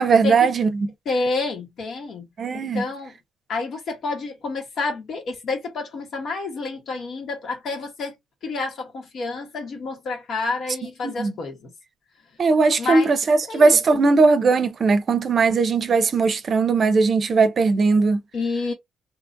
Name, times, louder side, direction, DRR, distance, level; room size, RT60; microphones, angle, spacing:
voice 1, 0.0-0.9 2.4-2.8 11.0-11.3 12.4-18.2, right 4 dB, 50° right, 0.6 m, -19 dB
voice 2, 1.0-2.3 2.5-3.1 3.5-8.1 8.4-11.7 12.8-13.1 13.5-13.8 18.3-18.7, left 3 dB, 65° left, 1.3 m, -29 dB
2.8 x 2.4 x 2.6 m
cardioid pair, 90°, 0 cm